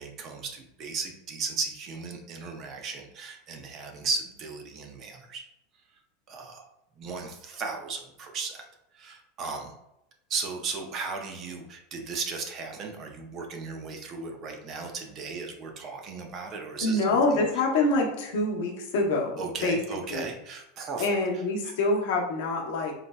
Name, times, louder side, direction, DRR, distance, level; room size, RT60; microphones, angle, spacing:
voice 1, 0.0-5.4 6.3-6.6 7.0-8.6 8.9-9.7 10.3-17.2 19.4-21.0 21.6-21.7, right 4 dB, 30° right, 3 dB, 0.4 m, -36 dB
voice 2, 16.8-19.8 20.1-20.3 21.0-22.9, left 2 dB, 70° left, 0 dB, 0.7 m, -26 dB
3.9 x 2.1 x 2.2 m, 0.85 s
supercardioid pair, 155°, 0 cm